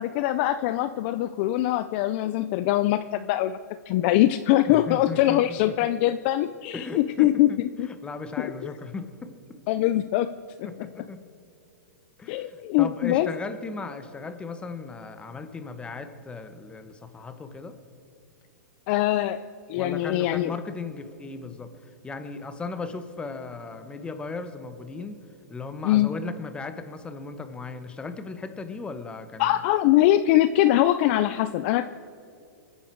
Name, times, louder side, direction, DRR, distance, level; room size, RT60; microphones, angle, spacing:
voice 1, 0.0-3.6 3.9-7.5 7.8-7.9 8.4-8.7 9.7-10.7 12.3-13.3 18.9-19.4 19.7-20.5 25.8-26.1 29.4-31.9, left 14 dB, 40° left, 12 dB, 0.5 m, -23 dB
voice 2, 4.7-5.9 6.7-9.6 10.6-11.2 12.2-17.8 19.7-25.2 25.5-29.6, left 4 dB, 10° left, 9 dB, 1.1 m, -37 dB
29.0 x 9.9 x 4.6 m, 2.6 s
hypercardioid pair, 140°, 10 cm